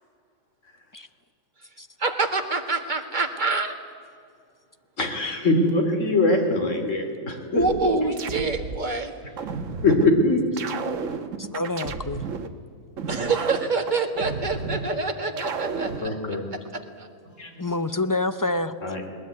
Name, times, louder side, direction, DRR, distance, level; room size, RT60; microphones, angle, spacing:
voice 1, 2.0-3.7 7.5-9.1 13.1-16.4 17.0-17.1, right 3 dB, 35° right, 5 dB, 1.9 m, -26 dB
voice 2, 5.0-7.6 9.8-10.4 16.0-16.4 17.4-17.5 18.8-19.1, left 2 dB, 65° left, 4 dB, 3.0 m, -22 dB
sound 1, 7.6-8.9 9.4-10.1 10.6-12.5 13.0-14.9 15.4-16.1, right 5 dB, 70° right, 1.4 m, -32 dB
voice 3, 11.4-12.2 17.6-18.7, left 2 dB, 30° left, 11 dB, 0.4 m, -27 dB
19.5 x 19.5 x 9.5 m, 2.2 s
omnidirectional pair, 1.4 m